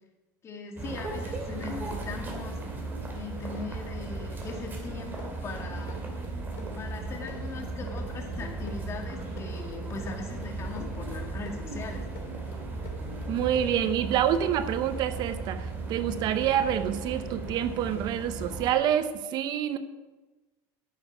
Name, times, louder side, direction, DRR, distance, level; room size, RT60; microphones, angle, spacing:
voice 1, 0.4-2.6 3.1-6.1 6.7-12.1, left 4 dB, 30° left, 3 dB, 2.0 m, -40 dB
sound 1, 0.8-18.7, right 2 dB, 20° right, 2.5 m, -36 dB
sound 2, 4.1-13.9, left 4 dB, 65° left, 2.5 m, -51 dB
voice 2, 13.3-19.8, right 10 dB, 45° right, 11 dB, 0.7 m, -27 dB
9.3 x 8.8 x 6.1 m, 1.2 s
supercardioid pair, 135°, 10 cm